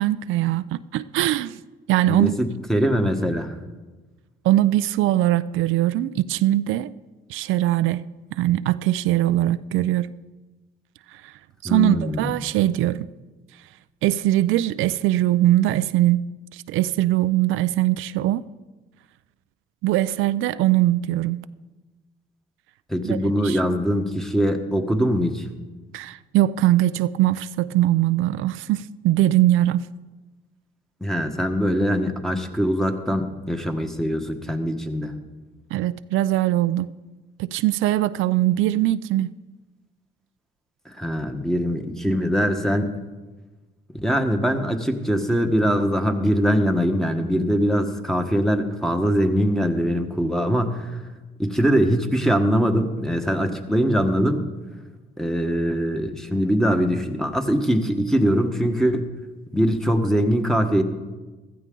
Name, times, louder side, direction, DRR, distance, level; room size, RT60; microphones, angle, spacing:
voice 1, 0.0-1.6 1.9-2.3 4.4-6.9 7.3-8.1 8.4-10.1 11.2-11.3 11.6-13.1 14.0-16.3 16.5-18.4 19.8-21.4 23.0-23.6 25.9-29.9 35.7-36.9 37.4-39.3, right 14 dB, 90° right, 0.4 m, -21 dB
voice 2, 2.0-3.5 11.6-12.3 22.9-25.4 31.0-35.1 40.9-42.9 44.0-50.9 51.4-54.5 55.2-59.1 59.5-60.8, equal, ahead, 1.3 m, -22 dB
15.5 x 13.5 x 3.8 m
cardioid pair, 90°, 20 cm